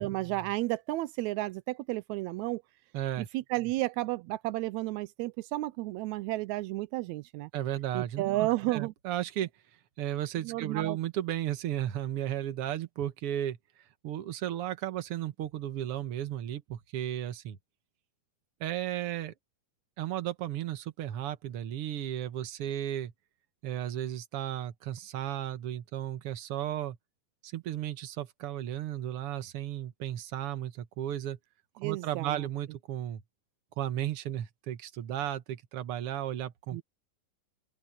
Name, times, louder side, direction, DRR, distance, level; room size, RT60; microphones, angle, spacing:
voice 1, 0.0-2.6 3.2-7.5 7.9-8.9 10.4-11.0 31.8-32.5 36.7-36.8, right 18 dB, 90° right, 1.6 m, -32 dB
voice 2, 2.9-3.3 7.5-9.5 10.0-13.6 14.0-17.6 18.6-19.3 20.0-23.1 23.6-27.0 27.4-31.4 31.8-33.2 33.8-36.8, right 11 dB, 55° right, 1.7 m, -34 dB
open air
omnidirectional pair, 3.8 m